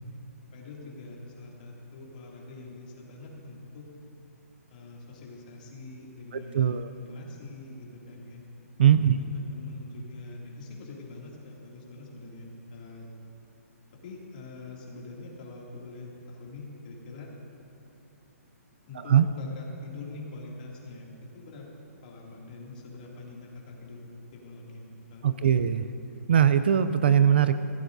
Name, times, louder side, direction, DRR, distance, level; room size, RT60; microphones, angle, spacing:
voice 1, 0.5-3.9 4.7-8.4 9.0-13.1 14.0-17.3 18.9-21.6 22.0-24.1 24.3-24.9 25.1-25.5, left 3 dB, 30° left, -3 dB, 2.5 m, -44 dB
voice 2, 6.5-6.9 8.8-9.2 19.1-19.3 25.2-25.8 26.3-27.5, right 9 dB, 40° right, 11 dB, 0.4 m, -20 dB
22.0 x 16.0 x 2.7 m, 2.8 s
hypercardioid pair, 175°, 8 cm